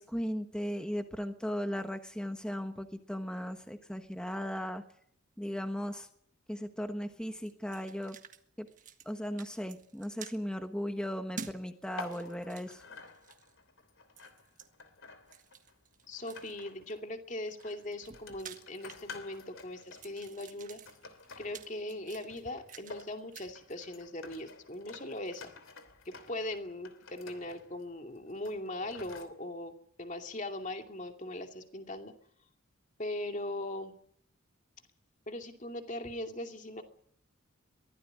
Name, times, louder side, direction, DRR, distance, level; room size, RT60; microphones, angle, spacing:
voice 1, 0.0-4.8 5.4-6.1 6.5-8.2 8.6-8.7 9.0-12.8, equal, 5° left, 6 dB, 1.2 m, -37 dB
sound 1, 7.4-8.4 8.7-9.1 9.4-10.4 11.4-11.6 12.0-13.6 14.2-14.7 15.3-16.7 17.3-19.5 19.8-23.1 23.3-23.5, right 5 dB, 35° right, 1.6 m, -49 dB
sound 2, 12.0-17.0 17.5-29.3, left 4 dB, 65° left, 3.0 m, -51 dB
voice 2, 16.1-20.8 21.4-25.5 26.1-29.7 30.0-32.1 33.0-33.9 35.3-36.8, left 1 dB, 35° left, 4 dB, 2.5 m, -40 dB
23.0 x 16.0 x 9.7 m, 0.66 s
head